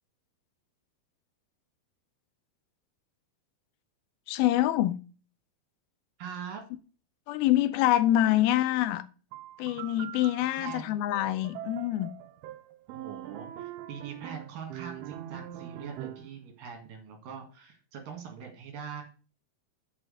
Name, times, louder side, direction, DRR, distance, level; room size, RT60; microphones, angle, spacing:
voice 1, 4.3-5.0 7.3-9.0 9.6-12.1, left 13 dB, 85° left, 2.5 m, -25 dB
voice 2, 6.2-6.6 10.6-11.0 12.9-19.0, right 6 dB, 65° right, 3.7 m, -42 dB
sound 1, 9.3-16.4, right 12 dB, 85° right, 2.7 m, -43 dB
6.4 x 6.1 x 6.4 m
omnidirectional pair, 4.4 m